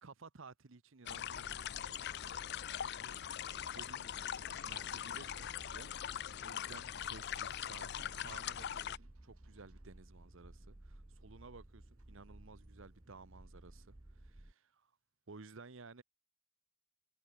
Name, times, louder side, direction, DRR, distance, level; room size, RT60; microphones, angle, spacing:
voice 1, 0.0-2.1 2.8-3.2 3.6-14.9 15.3-16.0, right 4 dB, 65° right, 0.9 m, -56 dB
sound 1, 1.1-9.0, left 10 dB, 50° left, 0.4 m, -42 dB
sound 2, 1.3-14.5, right 1 dB, 15° right, 0.5 m, -57 dB
sound 3, 4.0-14.3, right 3 dB, 85° right, 3.8 m, -74 dB
head